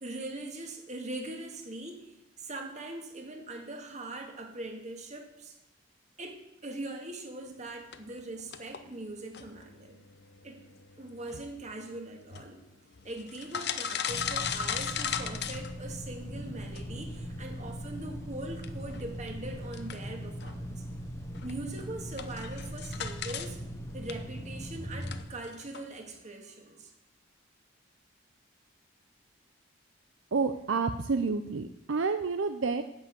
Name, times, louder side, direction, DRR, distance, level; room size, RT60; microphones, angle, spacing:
voice 1, 0.0-5.6 6.2-10.0 10.4-10.6 11.0-12.6 13.0-20.8 21.4-23.6 23.9-26.9, right 2 dB, 35° right, 3 dB, 2.0 m, -41 dB
sound 1, 7.9-16.3 16.7-23.5 23.8-26.2, left 8 dB, 55° left, 0.8 m, -39 dB
sound 2, 14.1-25.2, equal, 15° left, 1.3 m, -40 dB
voice 2, 30.3-32.8, right 4 dB, 70° right, 9 dB, 0.6 m, -29 dB
9.7 x 8.3 x 8.2 m, 0.87 s
head